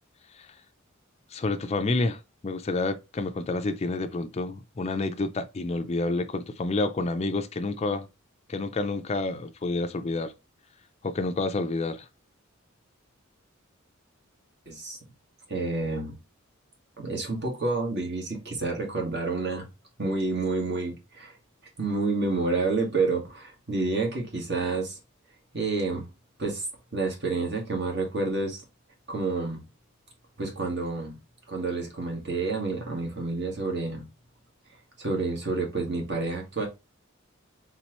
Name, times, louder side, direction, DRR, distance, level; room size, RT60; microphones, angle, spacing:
voice 1, 1.3-8.1 8.5-10.3 11.0-12.1, left 2 dB, 30° left, 0.4 m, -29 dB
voice 2, 14.7-15.0 15.5-16.2 17.0-19.7 20.0-21.3 21.8-25.0 25.5-26.0 26.4-26.6 26.9-28.6 29.1-29.6 30.4-31.2 31.5-34.0 35.0-36.7, right 3 dB, 55° right, 1.6 m, -29 dB
4.3 x 3.8 x 3.0 m
head